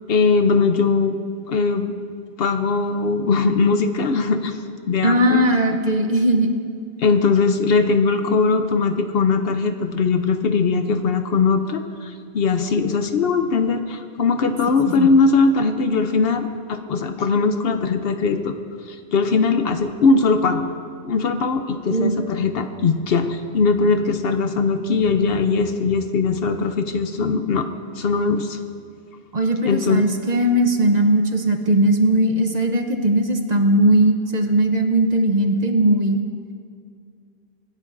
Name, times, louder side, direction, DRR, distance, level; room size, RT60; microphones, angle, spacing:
voice 1, 0.1-1.2 1.5-2.0 2.4-4.6 4.9-5.5 7.0-18.6 18.9-20.7 21.0-27.7 28.0-28.6 29.6-30.1, left 4 dB, 65° left, 8 dB, 0.8 m, -20 dB
voice 2, 5.0-6.6 14.8-15.1 21.9-22.1 29.3-36.2, right 1 dB, 45° right, 5 dB, 0.8 m, -18 dB
24.0 x 9.8 x 2.6 m, 2.2 s
omnidirectional pair, 1.1 m